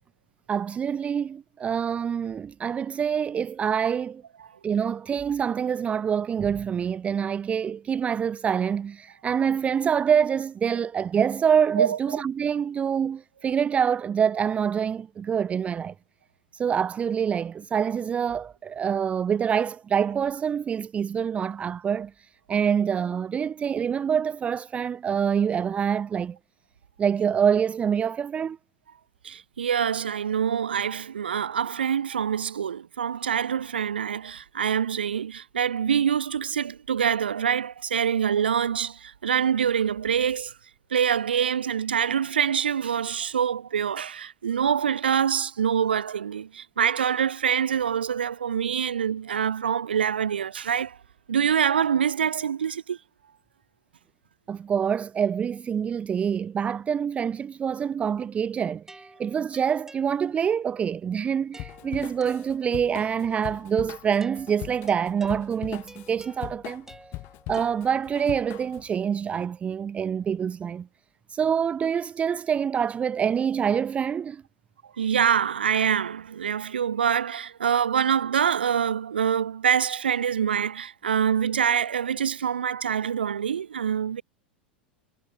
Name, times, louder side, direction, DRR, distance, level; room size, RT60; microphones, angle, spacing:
voice 1, 0.5-4.2 4.6-15.9 16.5-26.4 27.0-28.6 54.5-66.8 67.5-70.9 71.3-74.4, right 7 dB, 25° right, 0.7 m, -26 dB
voice 2, 11.8-12.2 29.2-40.5 40.9-51.0 51.3-53.0 75.0-84.2, right 8 dB, 75° right, 0.8 m, -25 dB
sound 1, 58.9-60.7 61.5-63.0 64.2-68.3, right 2 dB, 10° right, 7.0 m, -51 dB
Drum kit / Drum, 61.6-68.9, left 21 dB, 45° left, 5.1 m, -40 dB
figure-of-eight pair, 90°, 5 cm